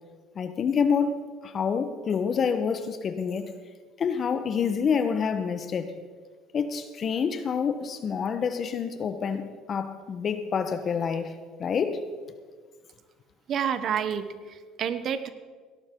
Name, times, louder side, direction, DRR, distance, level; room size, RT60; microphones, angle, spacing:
voice 1, 0.3-3.5 4.0-5.9 6.5-11.3 11.6-12.0, left 6 dB, 45° left, 9 dB, 1.2 m, -27 dB
voice 2, 13.5-15.3, right 8 dB, 50° right, 12 dB, 0.9 m, -29 dB
17.5 x 12.0 x 3.8 m, 1.5 s
supercardioid pair, 90°, 0 cm